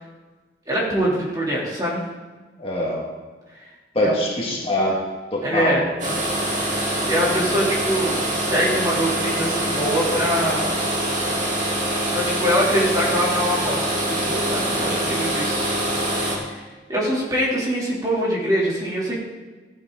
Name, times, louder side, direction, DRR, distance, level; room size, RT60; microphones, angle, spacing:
voice 1, 0.7-2.0 4.0-4.1 5.4-5.9 7.0-10.7 12.1-15.7 16.1-16.6 16.9-19.2, equal, 20° right, -5 dB, 3.1 m, -24 dB
voice 2, 2.6-3.0 3.9-5.0 5.3-5.8, left 1 dB, 30° left, -3 dB, 2.1 m, -23 dB
sound 1, 6.0-16.4, right 1 dB, 40° right, 3.0 m, -24 dB
15.0 x 10.5 x 3.9 m, 1.3 s
head